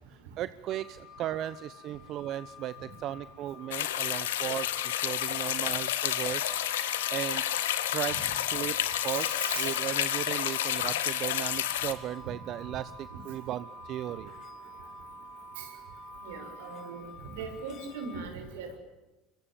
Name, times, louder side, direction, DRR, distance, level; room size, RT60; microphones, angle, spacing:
voice 1, 0.1-6.5 6.8-7.4 7.7-8.8 9.0-14.3, right 12 dB, 55° right, 15 dB, 1.0 m, -36 dB
sound 1, 0.7-18.2, left 10 dB, 50° left, 3.3 m, -51 dB
sound 2, 3.7-11.9, left 12 dB, 85° left, 2.1 m, -30 dB
sound 3, 6.5-17.0, right 6 dB, 10° right, 4.3 m, -49 dB
voice 2, 9.1-9.7 15.6-15.7 16.2-18.8, right 5 dB, 80° right, 5 dB, 6.9 m, -40 dB
27.0 x 24.0 x 8.9 m, 1.1 s
hypercardioid pair, 90°, 0 cm